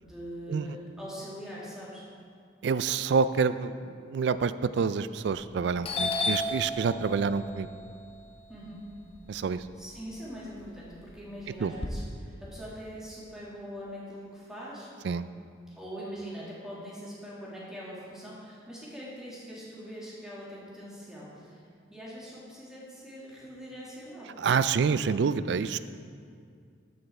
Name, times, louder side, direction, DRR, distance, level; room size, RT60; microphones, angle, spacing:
voice 1, 0.0-2.1 8.5-8.8 9.8-14.9 15.7-21.6 21.9-24.4, equal, 5° right, -7 dB, 2.1 m, -42 dB
voice 2, 2.6-7.7 9.3-9.6 11.6-11.7 15.0-15.2 24.4-25.8, right 5 dB, 65° right, 14 dB, 0.3 m, -27 dB
Doorbell, 5.3-5.5 5.8-10.0 10.3-11.9, left 2 dB, 30° left, 0.7 m, -34 dB
13.5 x 5.5 x 4.3 m, 2.2 s
head